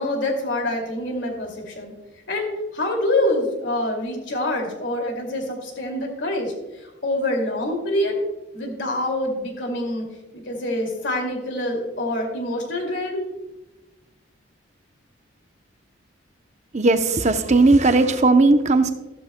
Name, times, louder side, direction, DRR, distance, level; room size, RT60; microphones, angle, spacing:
voice 1, 0.0-1.9 2.3-6.5 6.8-8.2 8.5-10.0 10.3-13.2, left 1 dB, 65° left, 1 dB, 2.4 m, -26 dB
voice 2, 16.7-18.9, right 3 dB, 35° right, 8 dB, 0.7 m, -17 dB
14.0 x 12.5 x 2.2 m, 1.1 s
head